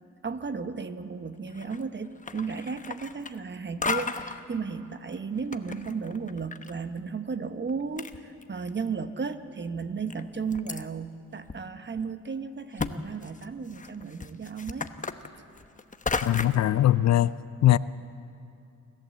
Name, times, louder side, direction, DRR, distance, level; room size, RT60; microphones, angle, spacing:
voice 1, 0.2-14.9, right 5 dB, 35° right, 1.2 m, -34 dB
sound 1, 1.5-1.9 2.2-3.6 3.8-4.4 5.1-6.7 7.0-7.1 7.7-7.8 8.0-8.8 9.3-9.4 10.1-10.8 11.5-11.6 12.0-12.1 12.8-12.9 13.2-16.7, left 4 dB, 25° left, 1.0 m, -34 dB
voice 2, 16.2-17.3 17.6-17.8, left 13 dB, 60° left, 0.5 m, -21 dB
28.5 x 12.0 x 7.8 m
cardioid pair, 70°, 30 cm